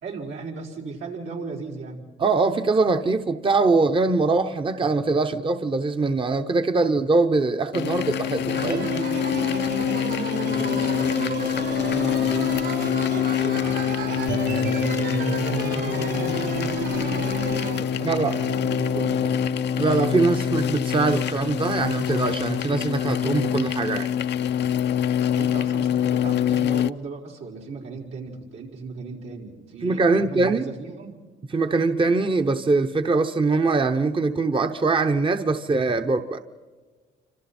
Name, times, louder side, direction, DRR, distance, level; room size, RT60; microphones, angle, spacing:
voice 1, 0.0-2.0 9.8-19.4 25.3-31.2, right 4 dB, 85° right, -2 dB, 4.6 m, -36 dB
voice 2, 2.2-8.9 18.0-18.3 19.8-24.1 29.8-30.7 31.5-36.4, right 3 dB, 25° right, 7 dB, 0.9 m, -22 dB
sound 1, 7.7-26.9, left 9 dB, 60° left, 0.6 m, -25 dB
sound 2, 8.5-17.8, right 5 dB, 65° right, 3.9 m, -31 dB
28.5 x 26.0 x 4.4 m, 1.4 s
cardioid pair, 90°, 20 cm